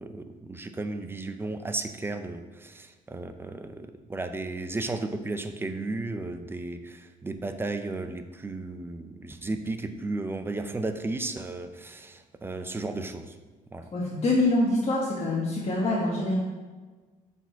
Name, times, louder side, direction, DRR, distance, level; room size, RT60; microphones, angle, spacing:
voice 1, 0.0-13.3 13.7-13.9, right 2 dB, 15° right, 8 dB, 0.5 m, -34 dB
voice 2, 13.9-16.3, left 2 dB, 40° left, -5 dB, 1.4 m, -25 dB
6.7 x 4.2 x 4.6 m, 1.3 s
cardioid pair, 110°, 17 cm